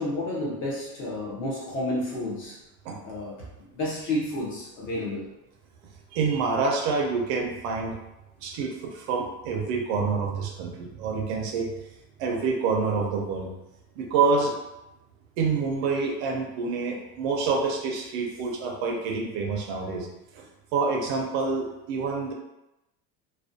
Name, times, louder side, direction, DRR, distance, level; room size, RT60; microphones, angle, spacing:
voice 1, 0.0-2.6 3.0-3.4 3.7-5.3, left 1 dB, 30° left, -5 dB, 0.4 m, -30 dB
voice 2, 6.1-7.9 8.4-11.7 12.2-13.5 14.0-14.5 15.4-20.1 20.3-20.5 20.7-22.3, right 4 dB, 50° right, 0 dB, 0.5 m, -27 dB
2.4 x 2.1 x 2.5 m, 0.93 s
cardioid pair, 165°, 43 cm